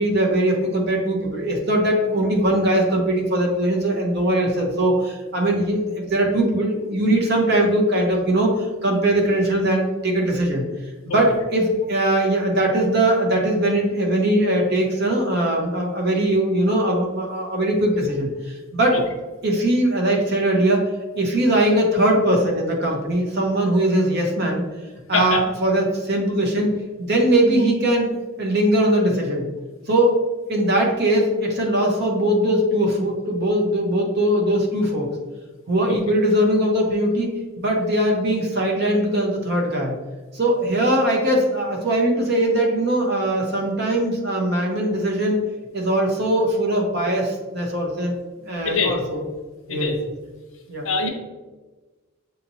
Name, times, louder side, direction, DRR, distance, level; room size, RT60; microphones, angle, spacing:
voice 1, 0.0-10.6 11.1-19.1 19.4-20.8 21.2-24.6 25.1-26.7 27.0-28.1 28.4-29.5 29.9-30.2 30.5-35.1 35.7-37.3 37.6-39.9 40.3-45.4 45.7-48.1 48.5-49.2 49.7-49.9 50.7-50.8, right 1 dB, 50° right, 0 dB, 0.9 m, -20 dB
voice 2, 18.9-19.0 25.1-25.4 35.9-36.0 48.6-48.9 49.7-50.0 50.8-51.1, left 4 dB, 65° left, 3 dB, 0.7 m, -23 dB
6.6 x 2.9 x 2.7 m, 1.3 s
head